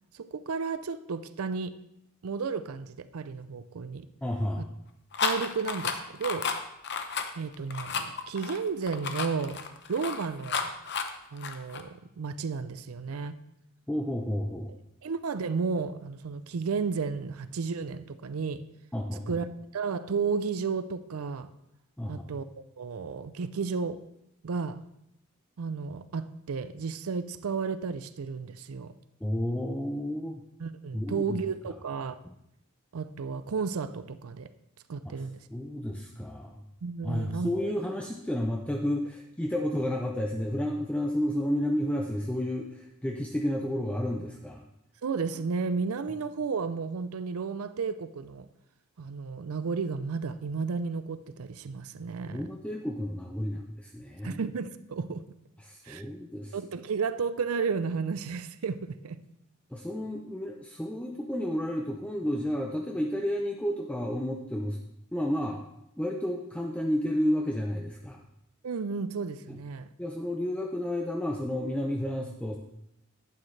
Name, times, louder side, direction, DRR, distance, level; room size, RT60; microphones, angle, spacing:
voice 1, 0.1-1.7 2.2-4.1 5.2-6.5 7.4-9.6 9.9-10.7 11.3-13.4 14.7-18.6 19.3-21.5 22.1-22.5 22.8-24.0 24.4-24.8 25.6-28.9 30.6-32.2 32.9-34.5 34.9-35.4 36.8-37.5 45.0-48.5 49.0-52.4 54.2-55.2 55.8-56.0 56.5-59.2 68.6-69.9, right 5 dB, 85° right, 13 dB, 0.5 m, -33 dB
voice 2, 4.2-4.6 13.9-14.7 18.9-19.4 22.0-22.2 29.2-30.4 30.9-31.4 35.0-35.1 35.5-36.6 37.0-44.6 52.3-54.4 55.6-56.6 59.7-64.8 65.1-65.6 66.0-68.2 69.5-69.6 70.0-72.6, left 1 dB, 5° left, 1 dB, 0.5 m, -31 dB
sound 1, 5.1-11.8, left 6 dB, 55° left, 0.8 m, -32 dB
11.5 x 8.6 x 3.2 m, 0.80 s
head